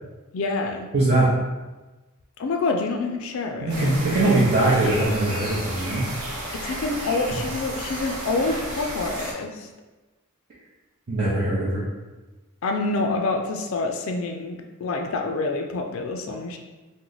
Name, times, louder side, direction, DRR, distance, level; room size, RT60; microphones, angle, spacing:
voice 1, 0.3-0.9 2.4-3.9 6.5-9.7 12.6-16.6, left 3 dB, 60° left, 4 dB, 0.3 m, -27 dB
voice 2, 0.9-1.3 3.6-6.0 11.1-11.9, right 2 dB, 45° right, -9 dB, 0.6 m, -21 dB
sound 1, 3.7-9.3, right 1 dB, 85° right, 0.9 m, -33 dB
3.0 x 2.1 x 3.8 m, 1.2 s
head